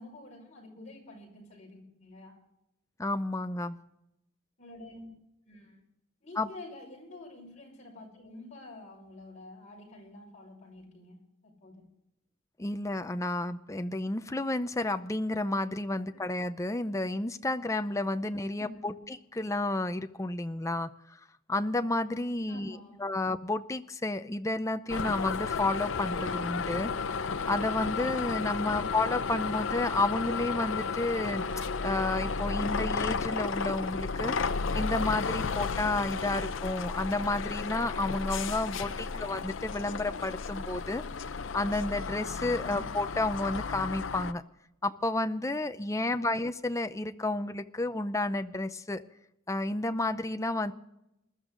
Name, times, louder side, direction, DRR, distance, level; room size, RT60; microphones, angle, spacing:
voice 1, 0.0-2.4 4.6-5.1 5.5-5.8 6.2-11.8 16.1-16.3 18.6-19.1 22.5-23.1 28.6-29.0 39.1-39.4 42.6-43.0 46.1-46.5, left 2 dB, 35° left, -1 dB, 5.6 m, -49 dB
voice 2, 3.0-3.8 6.4-6.5 12.6-21.2 21.5-26.9 27.5-41.0 41.5-44.4 44.8-49.0 49.5-50.7, left 2 dB, 15° left, 9 dB, 0.6 m, -31 dB
sound 1, 24.9-44.3, left 5 dB, 70° left, 0.6 m, -33 dB
21.0 x 13.0 x 3.9 m, 0.84 s
head